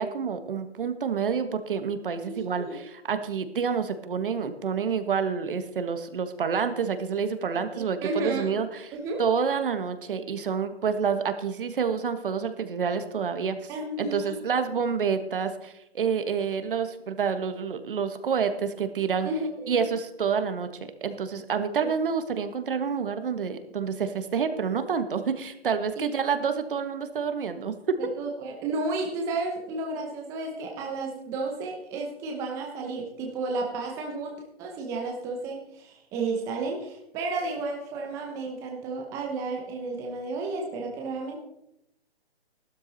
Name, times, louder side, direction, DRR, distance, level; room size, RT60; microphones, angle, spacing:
voice 1, 0.0-8.9 9.2-13.7 14.0-19.3 19.7-20.7 21.0-27.7, right 6 dB, 60° right, 9 dB, 1.5 m, -28 dB
voice 2, 2.3-2.8 7.7-8.6 8.9-9.2 13.7-14.4 19.2-19.8 21.8-21.9 26.0-26.1 28.0-41.4, right 3 dB, 10° right, 0 dB, 0.9 m, -32 dB
13.0 x 12.5 x 4.1 m, 0.80 s
hypercardioid pair, 165°, 31 cm